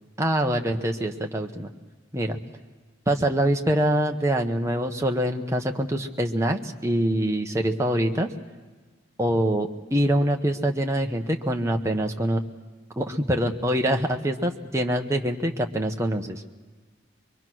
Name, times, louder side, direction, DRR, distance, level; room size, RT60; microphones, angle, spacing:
voice 1, 0.2-1.7 2.1-2.4 3.1-8.3 9.2-12.4 13.0-16.4, right 1 dB, 15° right, 3 dB, 1.0 m, -24 dB
23.5 x 23.0 x 6.2 m, 1.4 s
head